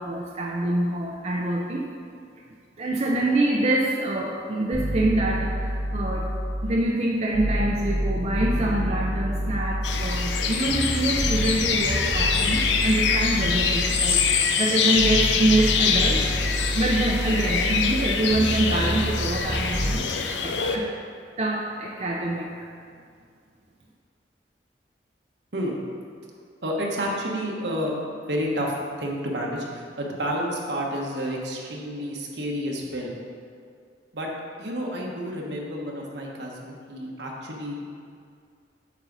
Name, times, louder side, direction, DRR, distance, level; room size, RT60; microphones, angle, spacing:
voice 1, 0.0-1.9 2.8-6.3 6.6-16.3 16.7-20.9 21.4-22.7, right 1 dB, 40° right, -2 dB, 0.6 m, -25 dB
sound 1, 4.7-6.9 7.3-14.5 15.0-20.0, equal, 15° right, 1.8 m, -28 dB
sound 2, 9.8-20.8, left 6 dB, 90° left, 0.6 m, -25 dB
voice 2, 26.6-33.2 34.1-34.3 34.6-37.8, equal, 70° right, -1 dB, 1.3 m, -30 dB
8.0 x 6.0 x 4.0 m, 2.2 s
head